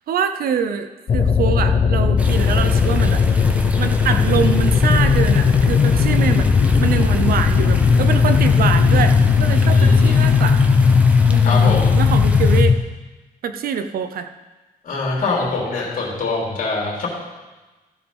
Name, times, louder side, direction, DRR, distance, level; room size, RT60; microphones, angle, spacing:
voice 1, 0.1-3.2 3.8-6.5 6.8-10.6 11.3-12.8 13.4-14.3, right 7 dB, 75° right, 9 dB, 0.7 m, -24 dB
sound 1, 1.1-12.8, left 5 dB, 45° left, 0.8 m, -16 dB
sound 2, 2.2-12.6, right 1 dB, 10° right, 0.9 m, -30 dB
voice 2, 9.6-10.2 11.4-12.0 14.8-17.1, left 3 dB, 65° left, -3 dB, 3.3 m, -24 dB
15.0 x 5.2 x 5.4 m, 1.2 s
cardioid pair, 125°, 15 cm